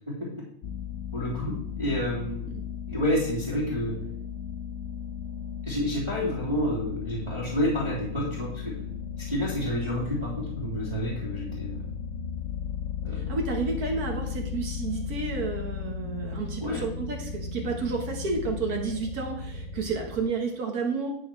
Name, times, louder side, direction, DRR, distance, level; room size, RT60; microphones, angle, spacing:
sound 1, 0.6-20.2, left 7 dB, 65° left, 1.0 m, -36 dB
voice 1, 1.1-2.5 2.9-3.9 5.6-8.7 9.2-11.8 13.0-13.3 16.6-16.8, equal, 20° right, -7 dB, 2.6 m, -29 dB
voice 2, 13.1-21.1, right 4 dB, 80° right, 1 dB, 1.8 m, -31 dB
10.0 x 6.3 x 4.5 m, 0.71 s
omnidirectional pair, 1.6 m